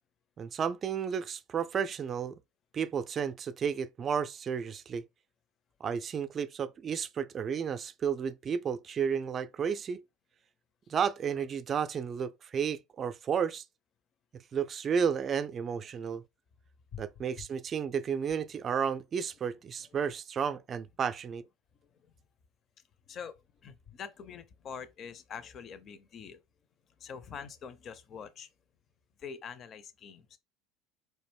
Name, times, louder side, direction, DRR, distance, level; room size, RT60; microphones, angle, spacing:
voice 1, 0.4-2.4 2.7-5.0 5.8-10.0 10.9-13.6 14.5-16.2 17.0-21.4, right 7 dB, 35° right, 0.4 m, -32 dB
voice 2, 21.8-22.1 23.1-26.4 27.0-28.5 29.2-30.4, left 7 dB, 40° left, 0.6 m, -45 dB
4.3 x 2.5 x 3.3 m
figure-of-eight pair, 70°, 0 cm